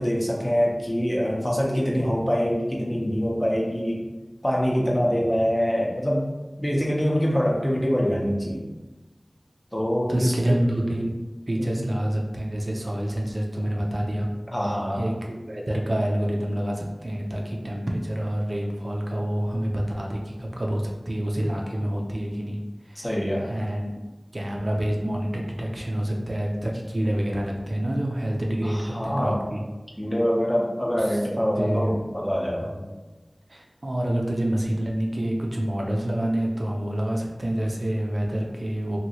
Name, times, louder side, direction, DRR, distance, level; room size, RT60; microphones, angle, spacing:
voice 1, 0.0-4.0 4.4-6.3 6.6-8.7 9.7-10.6 11.6-11.9 14.5-15.1 23.0-23.5 28.6-29.4 30.0-32.7, equal, 20° left, -3 dB, 0.6 m, -24 dB
voice 2, 10.1-11.1 11.5-14.3 15.0-15.1 15.5-22.6 22.9-23.1 23.5-23.9 24.3-29.6 31.6-31.9 32.7-32.9 33.5-39.0, right 1 dB, 60° right, -1 dB, 0.5 m, -27 dB
2.9 x 2.7 x 2.8 m, 1.1 s
wide cardioid pair, 50°, 0 cm